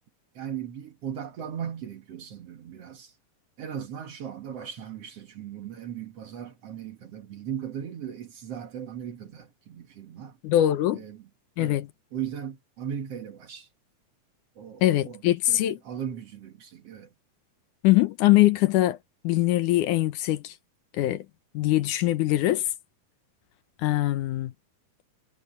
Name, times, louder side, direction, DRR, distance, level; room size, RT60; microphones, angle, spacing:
voice 1, 0.3-3.1 3.6-10.4 10.9-11.3 11.6-11.8 12.1-13.7 14.6-17.1, right 9 dB, 55° right, 2.3 m, -38 dB
voice 2, 10.4-11.0 11.6-11.9 14.8-15.8 17.8-19.0 19.2-20.5 20.9-21.3 21.5-22.7 23.8-24.5, left 15 dB, 75° left, 2.3 m, -22 dB
omnidirectional pair, 3.8 m